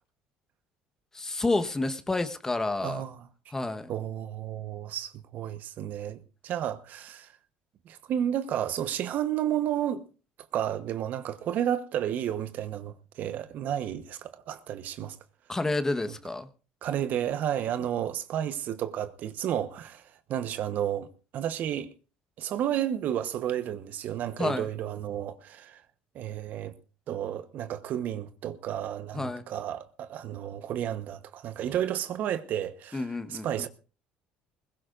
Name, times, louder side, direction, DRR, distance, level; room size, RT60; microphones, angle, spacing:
voice 1, 1.1-3.0 3.5-3.9 15.5-16.5 24.4-24.7 29.1-29.4 32.9-33.7, left 2 dB, 15° left, 1.3 m, -29 dB
voice 2, 2.8-3.2 3.9-7.3 7.9-10.0 10.5-15.2 16.8-20.0 20.3-21.1 21.3-21.9 22.4-25.8 26.1-26.7 27.1-33.7, right 10 dB, 60° right, 1.1 m, -32 dB
20.5 x 17.5 x 2.6 m
supercardioid pair, 95°, 3 cm